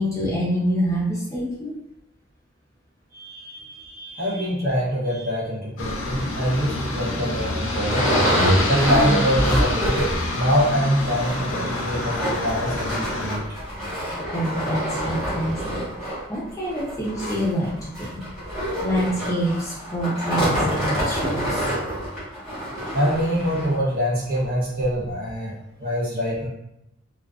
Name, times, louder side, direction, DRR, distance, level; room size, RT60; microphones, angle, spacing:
voice 1, 0.0-1.7 14.3-15.8 16.3-17.7 18.0-18.2 18.8-20.5 20.8-21.6, equal, 15° left, -6 dB, 0.5 m, -26 dB
voice 2, 3.1-8.1 8.6-10.0 10.3-13.4 22.9-26.5, equal, 45° right, -5 dB, 0.7 m, -24 dB
Aircraft, 5.8-13.4, left 2 dB, 80° left, 0.5 m, -28 dB
sound 1, 6.5-6.6 7.1-7.2 7.4-10.3 10.6-10.7 11.0-23.8 24.3-24.4 24.8-24.9, equal, 5° right, 1.1 m, -26 dB
2.4 x 2.3 x 2.2 m, 0.81 s
head